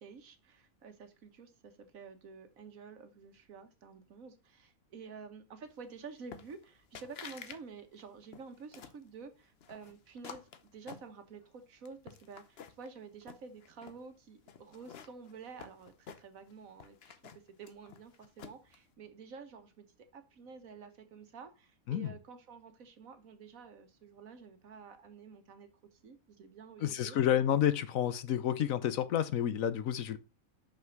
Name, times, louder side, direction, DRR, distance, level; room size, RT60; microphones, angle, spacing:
voice 1, 0.0-17.2 17.6-19.9 20.1-27.2, right 5 dB, 75° right, 1.6 m, -50 dB
sound 1, 6.3-6.7 6.9-7.6 7.9-9.0 9.6-11.5 11.9-12.9 13.2-14.0 14.5-16.5 16.8-18.8, left 7 dB, 55° left, 0.9 m, -50 dB
voice 2, 26.8-30.2, left 10 dB, 75° left, 1.2 m, -30 dB
6.0 x 5.6 x 5.9 m
omnidirectional pair, 1.4 m